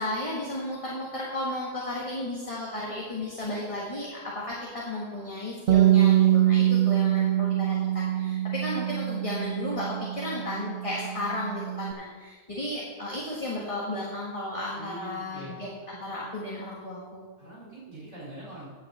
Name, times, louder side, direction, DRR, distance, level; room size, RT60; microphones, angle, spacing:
voice 1, 0.0-17.3, left 1 dB, 20° left, -5 dB, 1.6 m, -34 dB
Bass guitar, 5.7-11.9, right 12 dB, 75° right, 0.5 m, -24 dB
voice 2, 14.7-15.5 17.4-18.7, right 1 dB, 50° right, -7 dB, 4.2 m, -43 dB
10.0 x 5.7 x 7.5 m, 1.5 s
omnidirectional pair, 1.6 m